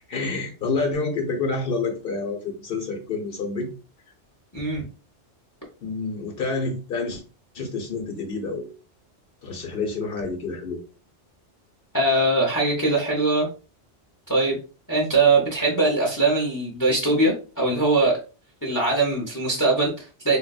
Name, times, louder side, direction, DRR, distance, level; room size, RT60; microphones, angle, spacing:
voice 1, 0.1-3.7 5.8-7.2 7.5-8.7 9.4-10.8, left 3 dB, 55° left, 2 dB, 1.0 m, -28 dB
voice 2, 4.5-4.8 11.9-13.5 14.3-14.6 14.9-18.2 18.6-20.4, right 2 dB, 20° left, -2 dB, 0.7 m, -21 dB
3.6 x 2.6 x 2.3 m, 0.34 s
omnidirectional pair, 1.2 m